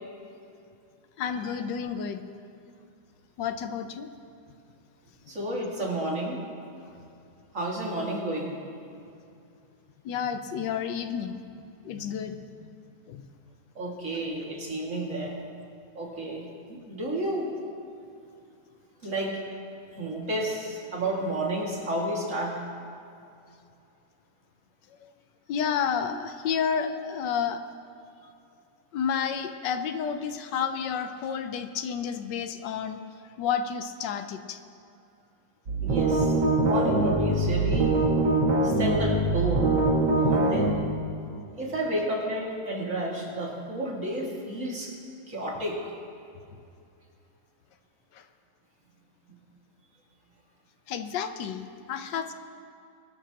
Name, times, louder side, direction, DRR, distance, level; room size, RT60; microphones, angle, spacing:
voice 1, 1.2-2.2 3.4-4.1 10.0-11.4 11.8-12.7 13.1-13.3 25.0-25.1 25.5-27.6 28.9-33.0 33.4-34.6 48.1-48.3 50.9-52.3, left 7 dB, 85° left, 8 dB, 1.4 m, -30 dB
voice 2, 5.3-6.4 7.5-8.6 13.8-15.4 15.9-17.5 19.0-19.4 19.9-22.6 35.8-36.3 36.6-37.9 38.6-39.7 40.2-40.7 41.6-44.9 45.3-45.8 52.1-52.2, right 1 dB, 45° right, -3 dB, 2.6 m, -31 dB
sound 1, 35.7-40.7, right 2 dB, 80° right, 2.5 m, -23 dB
23.0 x 13.0 x 2.9 m, 2.6 s
omnidirectional pair, 1.9 m